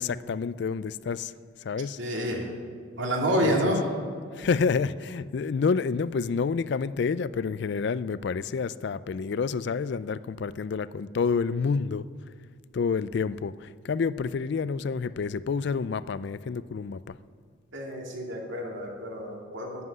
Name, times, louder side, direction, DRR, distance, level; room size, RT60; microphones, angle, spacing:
voice 1, 0.0-1.3 1.6-2.0 3.4-3.7 4.3-12.1 12.7-17.2, left 5 dB, 55° left, 16 dB, 0.3 m, -28 dB
voice 2, 2.0-2.5 3.0-4.0 17.7-19.8, equal, 65° right, 0 dB, 2.4 m, -28 dB
11.0 x 7.6 x 9.5 m, 2.1 s
head